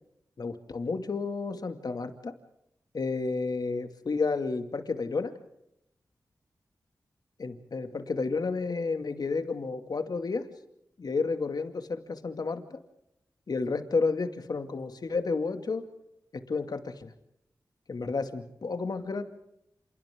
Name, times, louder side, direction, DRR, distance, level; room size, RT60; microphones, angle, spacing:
voice 1, 0.4-2.3 2.9-5.3 7.4-10.5 11.0-12.8 13.5-15.9 16.5-17.1 17.9-19.2, left 4 dB, 65° left, 7 dB, 2.4 m, -31 dB
28.5 x 28.0 x 3.8 m, 0.80 s
cardioid pair, 50°, 7 cm